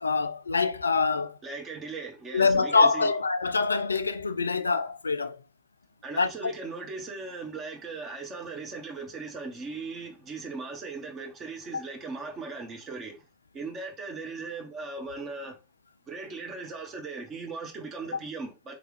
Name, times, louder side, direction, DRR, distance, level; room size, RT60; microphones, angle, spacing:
voice 1, 0.0-1.4 2.3-5.4 6.2-6.5, left 4 dB, 75° left, 0.3 m, -25 dB
voice 2, 1.4-3.1 6.0-13.2 13.5-15.6 16.1-18.7, right 4 dB, 25° right, 1.2 m, -38 dB
3.8 x 3.3 x 3.2 m
figure-of-eight pair, 90°, 0 cm